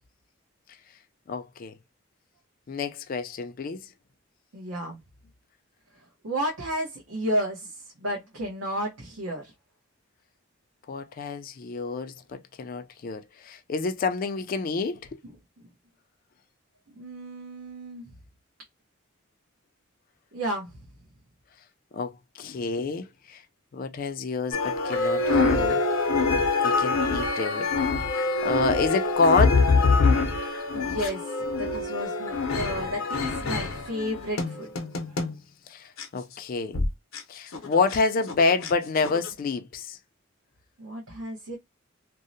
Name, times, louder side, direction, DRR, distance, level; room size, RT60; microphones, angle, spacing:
voice 1, 1.3-1.7 2.7-3.8 10.9-15.2 21.9-23.4 23.7-25.8 26.6-27.7 28.4-29.7 35.7-36.8 37.3-40.0, left 4 dB, 45° left, 0.3 m, -28 dB
voice 2, 4.5-5.0 6.2-9.5 15.2-15.4 17.0-18.1 20.3-20.8 30.7-31.3 31.6-34.7 35.1-35.2 40.8-41.6, equal, 75° right, 0.8 m, -32 dB
sound 1, 24.5-35.4 36.0-36.1 36.7-36.9 37.1-37.2 37.5-38.0 38.3-38.7 39.0-39.3, left 3 dB, 90° left, 0.6 m, -25 dB
2.6 x 2.0 x 2.5 m
head